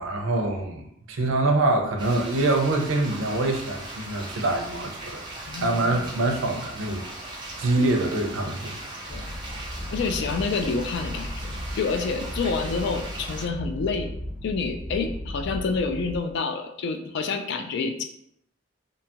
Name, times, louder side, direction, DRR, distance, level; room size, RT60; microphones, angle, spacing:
voice 1, 0.0-7.0 7.6-9.4, right 2 dB, 75° right, 4 dB, 0.5 m, -25 dB
sound 1, 2.0-13.5, right 2 dB, 25° right, 0.5 m, -39 dB
sound 2, 9.1-16.2, equal, 10° left, 0.7 m, -36 dB
voice 2, 9.9-14.1 14.4-18.0, left 4 dB, 60° left, 7 dB, 0.3 m, -28 dB
2.7 x 2.3 x 2.8 m, 0.74 s
head